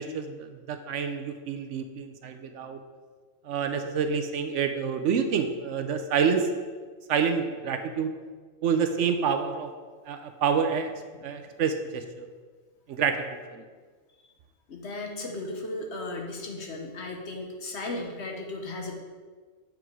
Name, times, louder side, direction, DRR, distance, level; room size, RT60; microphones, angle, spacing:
voice 1, 0.0-2.8 3.4-6.7 7.1-8.1 8.6-9.7 10.1-10.9 11.2-12.3 12.9-13.6, right 6 dB, 70° right, 7 dB, 0.9 m, -28 dB
voice 2, 14.7-19.0, left 2 dB, 60° left, 2 dB, 1.2 m, -36 dB
7.9 x 4.7 x 4.7 m, 1.5 s
omnidirectional pair, 1.4 m